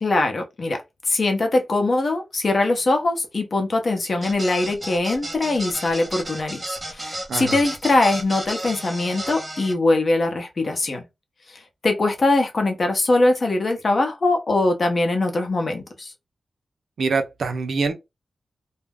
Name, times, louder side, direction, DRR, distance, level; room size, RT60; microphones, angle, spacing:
voice 1, 0.0-6.6 6.9-11.0 11.5-16.1, left 2 dB, 50° left, 0.7 m, -22 dB
sound 1, 4.2-9.7, right 1 dB, 25° right, 0.9 m, -33 dB
voice 2, 17.0-17.9, right 4 dB, 85° right, 0.5 m, -24 dB
2.3 x 2.1 x 3.4 m
wide cardioid pair, 105°, 0 cm